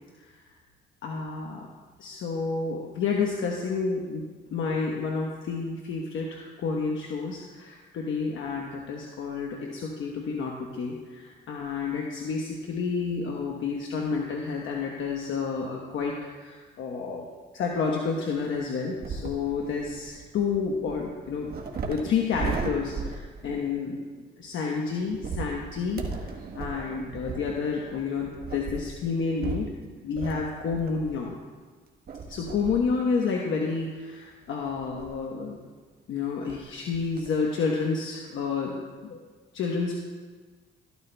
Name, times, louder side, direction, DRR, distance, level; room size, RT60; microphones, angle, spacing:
voice 1, 1.0-1.7 2.0-4.2 4.5-17.3 17.5-21.5 21.9-24.0 24.4-31.4 32.3-35.6 36.1-39.2 39.5-39.9, left 5 dB, 75° left, -1 dB, 1.1 m, -30 dB
sound 1, 19.0-23.8 25.1-31.3 32.1-33.0 33.4-33.5 34.6-35.3 36.2-36.3 36.5-36.6 36.9-37.3, right 4 dB, 50° right, 1.3 m, -37 dB
13.5 x 12.5 x 2.3 m, 1.4 s
cardioid pair, 90°, 20 cm